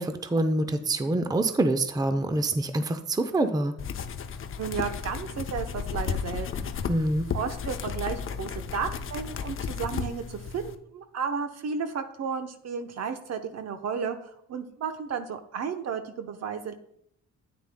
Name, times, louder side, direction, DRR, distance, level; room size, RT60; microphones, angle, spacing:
voice 1, 0.0-3.7 6.9-7.3, right 2 dB, 10° right, 9 dB, 0.6 m, -26 dB
sound 1, 3.8-10.8, left 7 dB, 45° left, 0.6 m, -34 dB
voice 2, 4.6-6.7 7.3-16.7, right 6 dB, 55° right, 8 dB, 1.0 m, -33 dB
10.0 x 9.0 x 2.2 m, 0.71 s
supercardioid pair, 70°, 31 cm